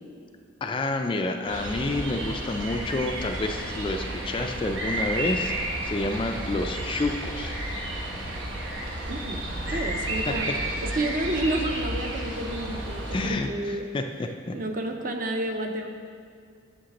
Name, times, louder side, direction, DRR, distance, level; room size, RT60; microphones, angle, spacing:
voice 1, 0.6-5.5 5.8-7.5 9.7-9.8 13.1-14.6, left 2 dB, 25° left, 5 dB, 0.3 m, -29 dB
sound 1, 1.5-13.3, right 1 dB, 85° right, 1.1 m, -32 dB
voice 2, 9.1-13.9 14.5-15.9, right 1 dB, 45° right, 4 dB, 0.6 m, -30 dB
8.2 x 7.5 x 2.9 m, 2.1 s
head